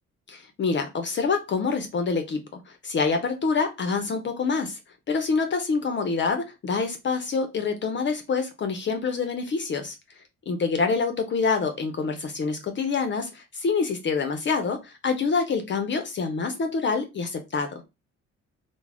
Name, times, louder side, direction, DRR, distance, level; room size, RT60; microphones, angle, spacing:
voice 1, 0.3-4.8 5.1-10.0 10.5-17.8, left 4 dB, 40° left, 0.5 m, -26 dB
2.3 x 2.0 x 3.2 m
cardioid pair, 90°, 30 cm